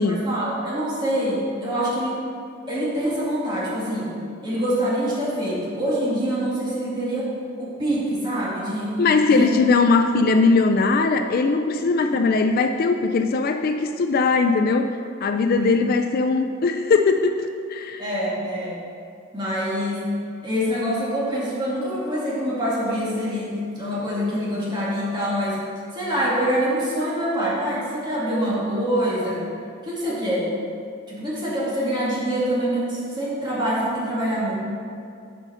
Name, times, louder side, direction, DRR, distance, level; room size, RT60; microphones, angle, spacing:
voice 1, 0.0-2.2 2.7-4.1 4.4-7.3 7.6-9.0 9.3-9.5 11.7-12.0 15.4-15.7 18.0-18.8 19.3-20.1 20.4-25.6 25.9-29.4 29.8-30.5 31.1-34.5, equal, 20° right, -7 dB, 2.0 m, -25 dB
voice 2, 9.0-14.9 15.2-18.0, left 4 dB, 45° left, 6 dB, 0.3 m, -20 dB
7.2 x 5.6 x 5.5 m, 2.4 s
head